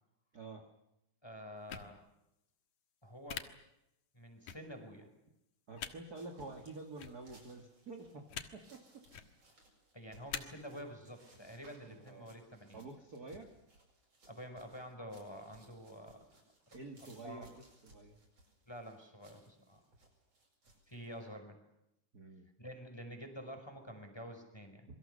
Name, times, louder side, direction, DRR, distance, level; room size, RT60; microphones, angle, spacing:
voice 1, 1.2-2.0 3.0-3.5 4.1-5.1 9.9-12.9 14.3-16.2 16.7-16.8 17.2-17.5 18.7-19.8 20.9-21.6 22.6-24.9, equal, 10° left, 5 dB, 5.1 m, -48 dB
sound 1, 1.7-1.9 3.3-3.4 4.5-4.6 5.8-5.9 7.0-7.1 8.3-8.5 9.0-9.3 10.3-10.4, left 9 dB, 70° left, 2.8 m, -42 dB
voice 2, 5.7-8.2 8.5-9.1 11.9-12.3 12.7-13.5 16.7-18.2 22.1-22.5, right 3 dB, 35° right, 3 dB, 2.5 m, -49 dB
sound 2, 6.1-21.2, right 1 dB, 50° right, 8.9 m, -64 dB
27.0 x 24.0 x 6.8 m, 0.84 s
omnidirectional pair, 3.5 m